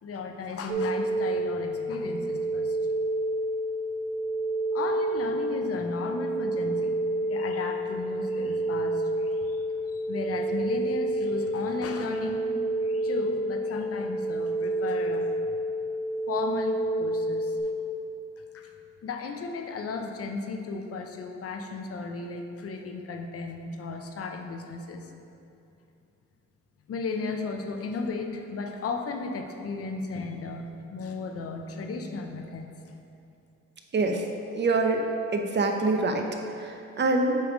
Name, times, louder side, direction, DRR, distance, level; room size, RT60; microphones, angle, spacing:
voice 1, 0.0-2.8 4.7-12.4 12.8-15.3 16.3-17.6 18.5-18.7 19.0-25.1 26.9-32.7, left 4 dB, 50° left, 4 dB, 0.7 m, -35 dB
sound 1, 0.7-17.6, right 1 dB, 65° right, 1.1 m, -29 dB
voice 2, 34.6-35.0 35.3-36.2 36.6-36.7 37.0-37.4, right 3 dB, 35° right, 3 dB, 0.7 m, -24 dB
7.9 x 3.4 x 5.2 m, 2.7 s
cardioid pair, 90°, 30 cm